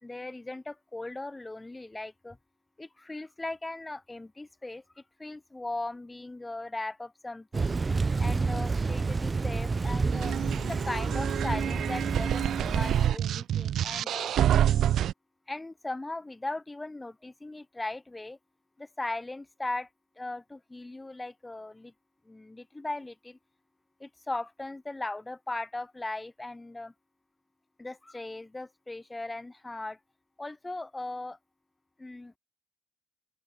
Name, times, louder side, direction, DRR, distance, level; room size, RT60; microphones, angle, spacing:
voice 1, 0.0-2.4 2.8-7.8 8.1-14.3 15.5-18.4 18.8-19.9 20.2-21.9 22.2-23.4 24.0-26.9 27.8-30.0 30.4-31.4 32.0-32.3, left 2 dB, 15° left, 2.7 m, -38 dB
Thunder / Rain, 7.5-13.1, right 4 dB, 30° right, 1.2 m, -29 dB
sound 1, 10.1-15.1, right 11 dB, 70° right, 0.7 m, -27 dB
open air
cardioid pair, 80°, 0 cm